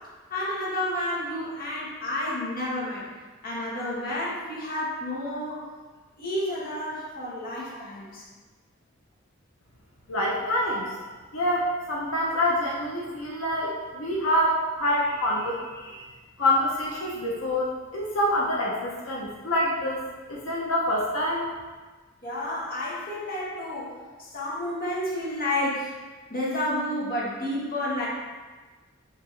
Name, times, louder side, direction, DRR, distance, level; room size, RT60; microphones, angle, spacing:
voice 1, 0.3-3.1 3.4-5.6 6.2-8.2 22.2-25.9 26.3-28.1, left 1 dB, 45° left, -6 dB, 1.2 m, -30 dB
voice 2, 10.1-10.9 11.3-16.0 16.4-20.0 20.3-21.5, left 1 dB, 90° left, -3 dB, 0.7 m, -26 dB
5.6 x 2.9 x 3.2 m, 1.4 s
head